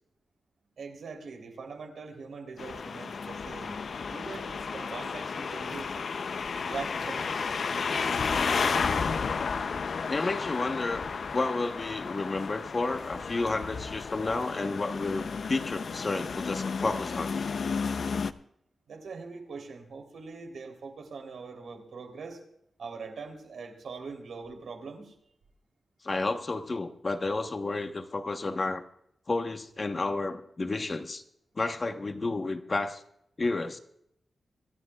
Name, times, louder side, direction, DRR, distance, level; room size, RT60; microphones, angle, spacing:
voice 1, 0.8-6.1 6.6-7.4 18.9-22.4 22.8-25.1, right 4 dB, 90° right, 3 dB, 3.5 m, -42 dB
sound 1, 2.6-18.3, left 5 dB, 60° left, 0.6 m, -32 dB
voice 2, 10.1-17.3 26.0-28.8 29.3-31.2 31.6-33.0 33.4-33.8, left 3 dB, 35° left, 6 dB, 1.2 m, -31 dB
26.0 x 13.0 x 2.4 m, 0.73 s
wide cardioid pair, 130°, 0 cm